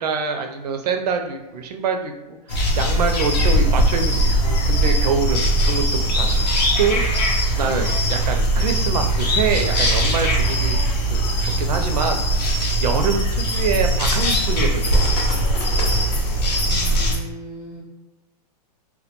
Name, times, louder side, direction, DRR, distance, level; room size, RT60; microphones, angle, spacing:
voice 1, 0.0-6.5 6.8-10.8 11.1-12.3 12.8-15.1, right 5 dB, 75° right, 5 dB, 0.5 m, -25 dB
sound 1, 2.5-17.2, right 1 dB, 85° left, 0.7 m, -20 dB
voice 2, 16.6-17.8, right 2 dB, 15° right, -5 dB, 0.5 m, -37 dB
2.2 x 2.2 x 2.8 m, 1.0 s
hypercardioid pair, 140°, 21 cm